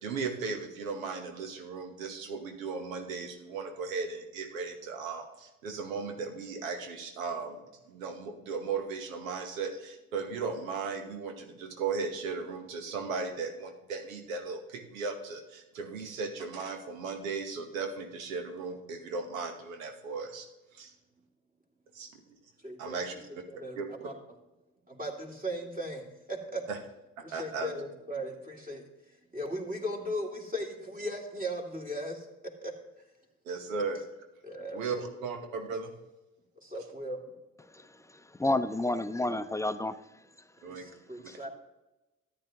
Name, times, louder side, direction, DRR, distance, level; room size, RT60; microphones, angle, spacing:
voice 1, 0.0-20.5 20.7-20.9 21.9-22.3 22.8-23.1 23.7-24.1 26.7-26.8 27.2-27.7 33.4-34.0 34.7-35.9 40.6-40.8, right 4 dB, 85° right, 6 dB, 1.1 m, -36 dB
voice 2, 22.6-24.1 24.9-26.6 27.2-28.8 29.3-32.3 32.6-32.7 33.7-33.8 34.4-35.1 36.6-37.2 40.6-41.5, equal, 20° right, 0 dB, 2.6 m, -38 dB
voice 3, 38.4-40.0 41.3-41.5, left 2 dB, 10° left, 12 dB, 0.5 m, -30 dB
13.5 x 9.1 x 2.9 m, 1.0 s
hypercardioid pair, 50°, 39 cm